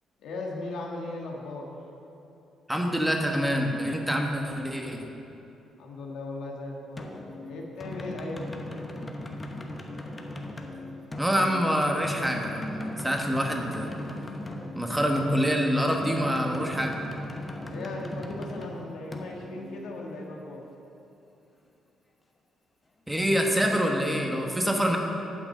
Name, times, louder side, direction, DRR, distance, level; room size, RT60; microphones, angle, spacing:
voice 1, 0.2-1.7 5.8-8.8 17.7-20.7, left 2 dB, 80° left, -1 dB, 1.5 m, -37 dB
voice 2, 2.7-5.0 11.2-13.9 14.7-16.9 23.1-25.0, equal, 5° right, 2 dB, 1.2 m, -26 dB
sound 1, 7.0-20.5, left 1 dB, 25° left, 1.0 m, -39 dB
8.9 x 6.1 x 7.6 m, 2.9 s
cardioid pair, 90°, 0 cm